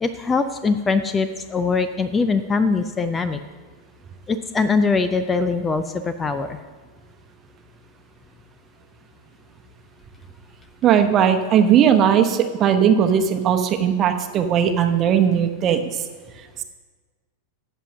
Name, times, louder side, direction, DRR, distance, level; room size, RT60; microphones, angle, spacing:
voice 1, 0.0-3.4 4.3-6.6, left 4 dB, 15° left, 11 dB, 0.5 m, -22 dB
voice 2, 10.8-15.8, right 8 dB, 30° right, 7 dB, 1.0 m, -18 dB
11.5 x 7.5 x 6.3 m, 1.4 s
figure-of-eight pair, 90°, 0 cm